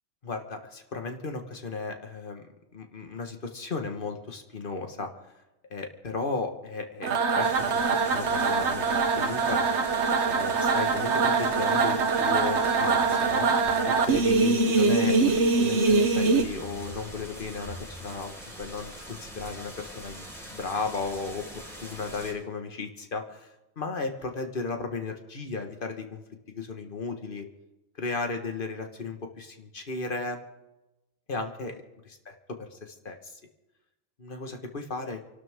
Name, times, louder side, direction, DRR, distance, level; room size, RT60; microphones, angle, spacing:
voice 1, 0.2-2.5 2.7-5.1 5.7-8.8 9.2-9.9 10.2-13.5 13.8-20.3 20.5-23.5 23.7-26.2 26.5-27.4 27.9-30.4 31.3-32.3 32.8-33.4 34.2-35.2, left 4 dB, 40° left, 5 dB, 1.7 m, -35 dB
sound 1, 7.0-16.4, right 4 dB, 60° right, 1.3 m, -23 dB
sound 2, 7.4-22.3, equal, ahead, 4.8 m, -43 dB
28.0 x 12.0 x 3.7 m, 0.99 s
omnidirectional pair, 1.4 m